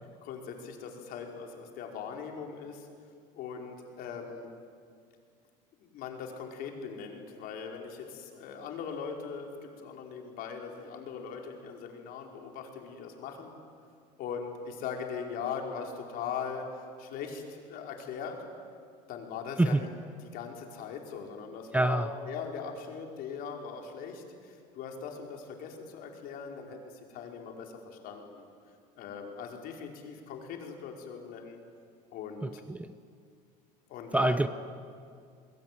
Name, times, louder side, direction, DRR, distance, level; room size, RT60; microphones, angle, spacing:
voice 1, 0.2-2.9 3.3-4.5 5.8-13.5 14.2-18.4 19.1-19.9 20.3-28.4 29.0-31.6 32.1-32.6 33.9-34.4, left 6 dB, 60° left, 2 dB, 5.0 m, -40 dB
voice 2, 21.7-22.1 32.4-32.9 34.1-34.5, right 2 dB, 10° right, 12 dB, 0.7 m, -26 dB
28.5 x 21.5 x 9.4 m, 2.2 s
supercardioid pair, 125°, 17 cm